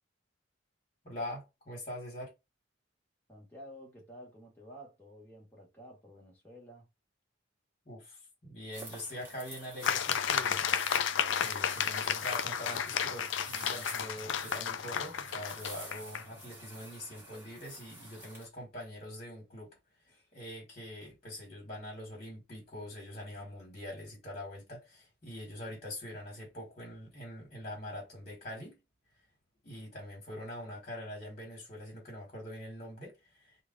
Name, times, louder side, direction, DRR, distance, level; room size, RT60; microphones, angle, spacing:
voice 1, 1.0-2.3 7.8-10.7 11.4-19.7 20.0-28.8 29.6-33.6, left 1 dB, 35° left, 1.6 m, -44 dB
voice 2, 3.3-6.9, equal, 10° left, 1.3 m, -51 dB
sound 1, 8.7-18.5, right 1 dB, 10° right, 1.2 m, -49 dB
sound 2, 9.8-16.2, left 8 dB, 70° left, 0.4 m, -32 dB
3.3 x 2.3 x 3.7 m
head